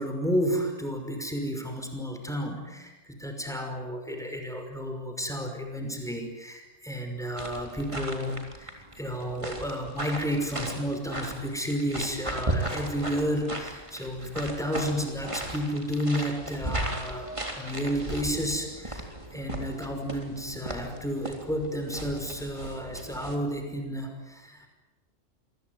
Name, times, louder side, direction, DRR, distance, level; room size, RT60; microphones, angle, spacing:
voice 1, 0.0-24.7, equal, ahead, 4 dB, 5.7 m, -32 dB
sound 1, 7.4-23.4, right 1 dB, 25° right, 3.9 m, -37 dB
28.0 x 22.5 x 9.6 m, 1.1 s
omnidirectional pair, 1.3 m